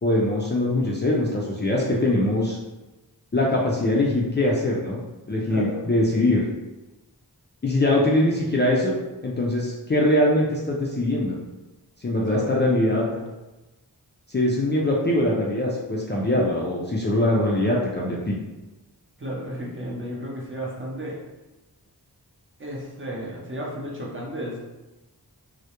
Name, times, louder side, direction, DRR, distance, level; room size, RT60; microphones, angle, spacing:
voice 1, 0.0-2.6 3.3-5.0 5.3-6.4 7.6-8.9 9.2-11.4 12.0-13.0 14.3-18.4, left 1 dB, 25° left, -4 dB, 0.4 m, -22 dB
voice 2, 5.5-5.8 12.2-13.3 19.2-21.2 22.6-24.6, equal, 30° right, -4 dB, 0.6 m, -33 dB
2.2 x 2.0 x 2.8 m, 1.1 s
wide cardioid pair, 45°, 41 cm